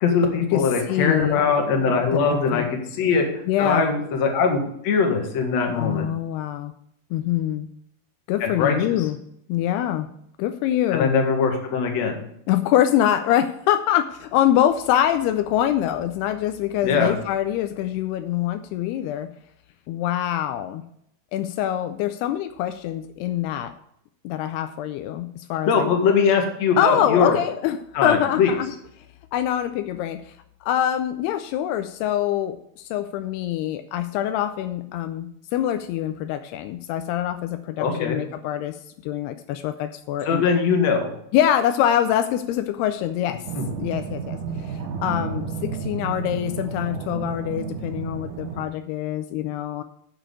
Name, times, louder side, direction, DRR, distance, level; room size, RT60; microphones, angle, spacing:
voice 1, 0.0-3.3 3.6-6.1 8.4-9.0 10.9-12.2 16.8-17.1 25.7-27.4 27.9-28.5 37.8-38.2 40.3-41.1 43.6-43.7, left 5 dB, 50° left, 2 dB, 2.3 m, -21 dB
voice 2, 0.5-1.4 2.1-2.7 3.5-3.9 5.8-6.7 7.1-7.7 8.3-9.2 9.5-10.1 10.4-11.1 12.5-19.3 19.9-20.8 21.3-23.7 24.2-25.9 26.8-28.7 29.3-30.3 30.6-38.8 39.0-40.4 41.3-43.4 43.8-49.8, left 11 dB, 85° left, 9 dB, 2.6 m, -24 dB
sound 1, 43.4-48.7, right 6 dB, 70° right, 2.1 m, -31 dB
7.5 x 7.0 x 8.1 m, 0.72 s
omnidirectional pair, 4.7 m